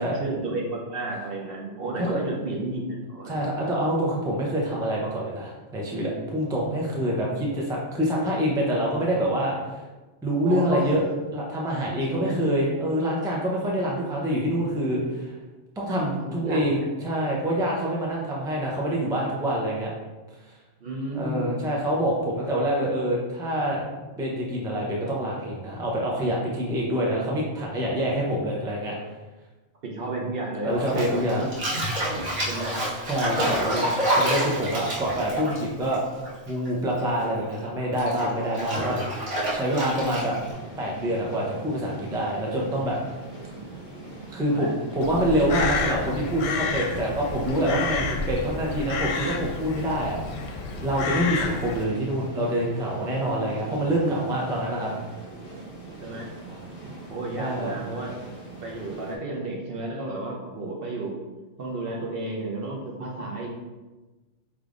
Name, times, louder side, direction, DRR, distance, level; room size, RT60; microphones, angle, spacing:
voice 1, 0.0-3.4 10.3-11.0 12.0-12.4 16.2-16.9 20.8-21.5 29.8-31.5 32.1-32.8 33.4-33.9 39.8-40.1 44.4-44.7 56.0-56.3 57.1-58.1 58.6-61.2 61.6-63.5, right 2 dB, 55° right, -2 dB, 0.8 m, -32 dB
voice 2, 3.3-9.8 10.2-11.0 11.3-15.3 15.8-19.9 21.1-23.8 24.2-28.9 30.6-31.5 33.0-33.9 34.2-36.0 36.5-39.3 39.5-40.3 40.8-43.0 44.3-50.5 50.8-54.9 56.8-56.9 57.4-57.7, equal, 5° right, -3 dB, 0.4 m, -26 dB
Bathtub (filling or washing), 30.8-36.7 36.9-40.5, right 1 dB, 70° right, 1.5 m, -28 dB
sound 1, 40.3-59.2, right 2 dB, 20° left, 1.2 m, -42 dB
Crow, 45.0-51.8, left 4 dB, 90° left, 1.0 m, -30 dB
5.1 x 3.5 x 2.5 m, 1.2 s
omnidirectional pair, 1.3 m